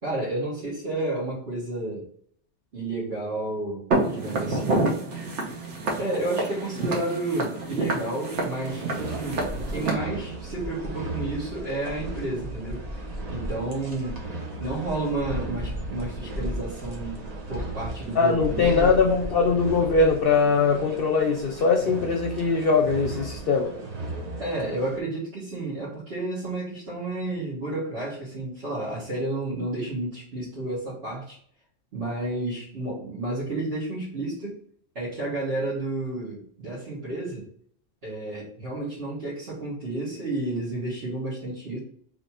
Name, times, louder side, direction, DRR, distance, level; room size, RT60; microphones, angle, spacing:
voice 1, 0.0-2.1 2.7-4.9 6.0-12.8 13.3-14.2 14.6-17.2 17.5-19.0 24.4-31.4 31.9-34.6 34.9-37.5 38.0-41.8, right 2 dB, 65° right, -10 dB, 1.7 m, -31 dB
Walk footsteps, 3.9-9.9, right 2 dB, 90° right, 1.2 m, -28 dB
sound 1, 8.3-25.0, right 1 dB, 40° right, 0.9 m, -35 dB
voice 2, 18.2-23.7, left 4 dB, 60° left, 1 dB, 0.8 m, -21 dB
3.2 x 2.9 x 4.2 m, 0.62 s
omnidirectional pair, 1.2 m